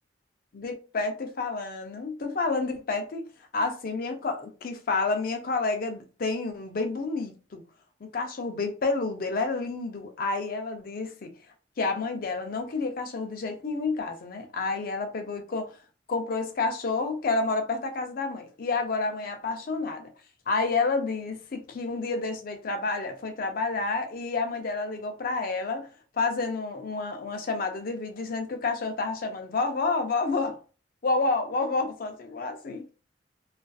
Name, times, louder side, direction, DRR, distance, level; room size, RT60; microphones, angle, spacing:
voice 1, 0.5-3.3 3.5-7.6 8.0-11.3 11.8-15.7 16.1-20.1 20.5-25.9 26.1-30.6 31.0-32.8, left 3 dB, 50° left, 0.5 m, -29 dB
2.4 x 2.4 x 2.3 m
head